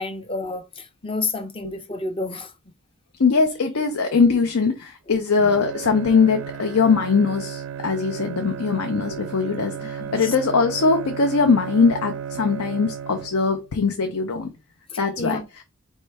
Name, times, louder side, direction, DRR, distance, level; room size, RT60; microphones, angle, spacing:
voice 1, 0.0-2.5 10.0-10.3 14.9-15.4, left 3 dB, 25° left, 0.5 m, -30 dB
voice 2, 3.2-14.5 15.0-15.4, left 4 dB, 90° left, 0.6 m, -21 dB
Bowed string instrument, 5.4-13.7, right 8 dB, 70° right, 0.4 m, -34 dB
4.5 x 3.2 x 3.2 m
head